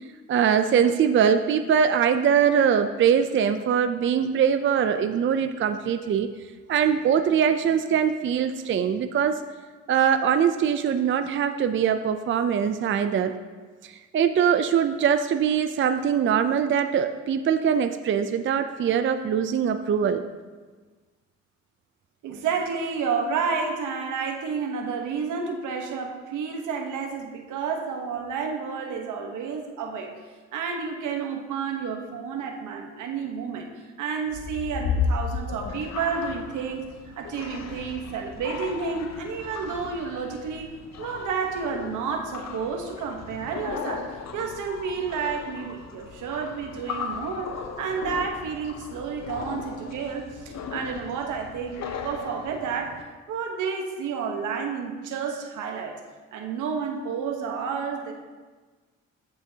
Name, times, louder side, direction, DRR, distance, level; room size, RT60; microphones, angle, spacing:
voice 1, 0.3-6.3 6.7-9.4 9.9-13.3 13.8-20.2, right 8 dB, 40° right, 8 dB, 0.5 m, -22 dB
voice 2, 22.2-30.1 30.5-33.7 34.0-36.9 37.2-40.7 41.0-44.1 44.3-52.9 53.3-55.9 56.3-58.1, right 5 dB, 80° right, 3 dB, 1.1 m, -30 dB
sound 1, 34.3-53.0, left 5 dB, 60° left, 0.8 m, -35 dB
14.0 x 6.3 x 2.8 m, 1.4 s
cardioid pair, 90°, 30 cm